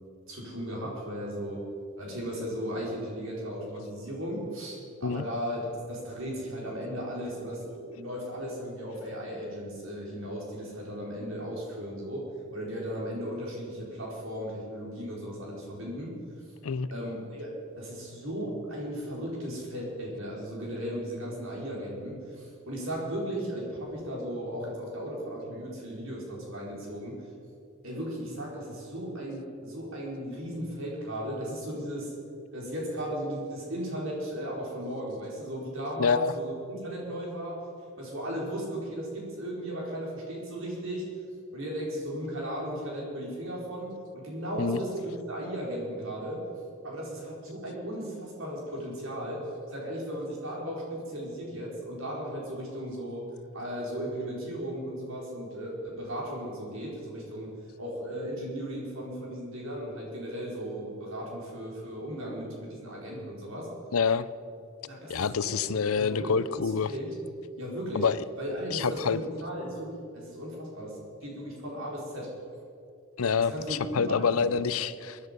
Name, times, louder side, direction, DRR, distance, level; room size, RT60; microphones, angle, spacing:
voice 1, 0.3-1.7 2.0-5.6 5.9-16.2 16.9-27.2 27.8-32.1 32.5-37.6 38.0-41.1 41.5-46.4 46.8-53.3 53.5-57.5 57.8-63.7 64.9-67.2 67.6-68.1 68.4-72.3 73.4-74.5, equal, 70° right, -3 dB, 4.8 m, -36 dB
voice 2, 36.0-36.3 44.6-44.8 63.9-64.3 65.1-66.9 67.9-68.2 68.7-69.2 73.2-75.2, left 5 dB, 85° left, 16 dB, 0.6 m, -27 dB
22.0 x 10.5 x 5.4 m, 2.6 s
head